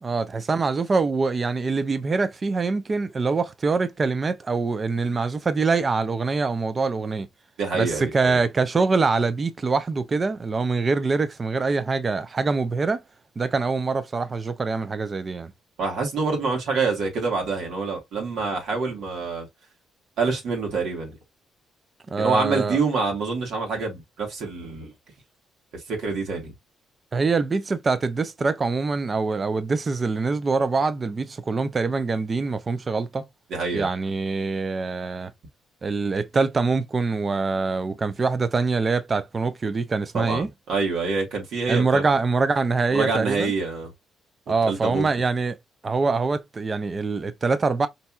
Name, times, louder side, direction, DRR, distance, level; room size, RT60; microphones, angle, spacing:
voice 1, 0.0-7.3 7.7-13.0 13.4-15.5 22.1-22.8 27.1-33.2 33.7-35.3 35.8-40.5 41.7-43.5 44.5-45.6 45.8-47.9, right 4 dB, 35° right, 0.5 m, -24 dB
voice 2, 7.6-8.4 15.8-19.5 20.2-21.2 22.2-24.9 25.9-26.5 33.5-33.9 40.1-42.0 42.9-43.9 44.6-45.1, right 4 dB, 75° right, 1.4 m, -26 dB
4.3 x 2.6 x 2.3 m
cardioid pair, 90°, 0 cm